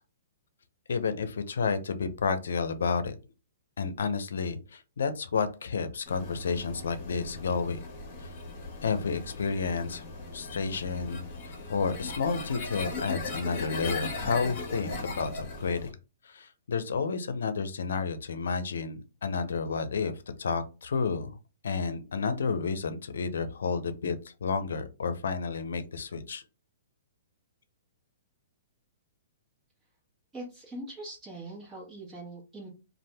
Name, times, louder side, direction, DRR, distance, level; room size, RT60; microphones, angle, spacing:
voice 1, 0.9-3.1 3.8-7.8 8.2-8.3 8.8-10.0 10.3-15.9 16.2-21.4 21.6-24.2 24.4-26.4, left 5 dB, 85° left, 11 dB, 0.5 m, -31 dB
sound 1, 6.1-15.9, left 3 dB, 35° left, 1.2 m, -38 dB
voice 2, 30.3-32.7, right 1 dB, 10° right, -5 dB, 1.4 m, -42 dB
2.6 x 2.4 x 3.3 m, 0.31 s
hypercardioid pair, 150°, 0 cm